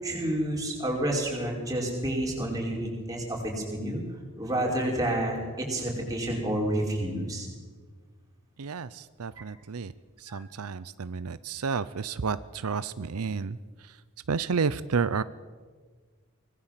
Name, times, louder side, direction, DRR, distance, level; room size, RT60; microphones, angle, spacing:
voice 1, 0.0-4.0 4.4-7.5 10.3-10.4, right 1 dB, 15° right, -1 dB, 5.3 m, -29 dB
voice 2, 8.6-9.9 10.2-13.6 14.3-15.2, right 5 dB, 85° right, 15 dB, 0.6 m, -31 dB
24.5 x 19.0 x 7.5 m, 1.5 s
head